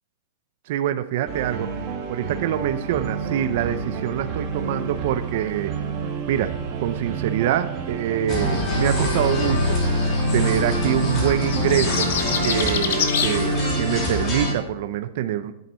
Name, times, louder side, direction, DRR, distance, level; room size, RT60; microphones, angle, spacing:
voice 1, 0.7-1.8 2.1-5.7 6.3-6.5 6.8-9.8 10.3-12.1 12.4-15.5, right 11 dB, 40° right, 9 dB, 0.5 m, -25 dB
sound 1, 1.3-12.8, right 6 dB, 25° right, 1.6 m, -31 dB
sound 2, 8.3-14.5, left 1 dB, 20° left, 2.7 m, -24 dB
sound 3, 11.3-13.4, left 7 dB, 60° left, 1.5 m, -25 dB
11.5 x 9.3 x 5.5 m, 0.80 s
supercardioid pair, 180°, 0 cm